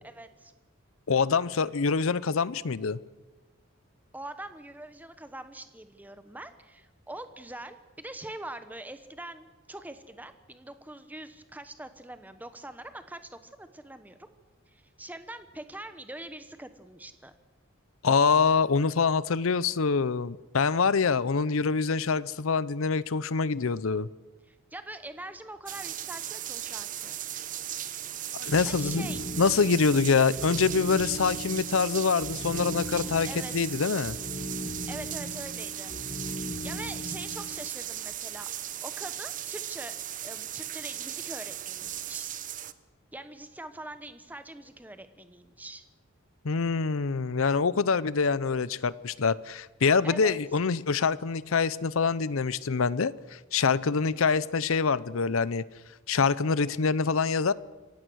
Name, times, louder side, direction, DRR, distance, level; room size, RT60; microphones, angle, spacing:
voice 1, 0.0-0.5 4.1-14.3 14.7-17.3 24.5-27.2 28.6-29.2 33.3-33.8 34.9-35.9 36.4-39.9 40.2-42.3 43.1-45.8 50.0-50.4 54.1-54.2, right 1 dB, 10° right, 10 dB, 1.1 m, -43 dB
voice 2, 1.1-3.0 18.0-24.1 28.4-29.1 29.4-34.2 46.4-55.6 56.1-57.5, left 5 dB, 75° left, 19 dB, 0.6 m, -25 dB
sound 1, 25.7-42.7, right 11 dB, 40° right, 0.8 m, -37 dB
sound 2, 28.5-37.7, left 1 dB, 30° left, 1.1 m, -39 dB
26.5 x 16.5 x 6.3 m, 1.2 s
head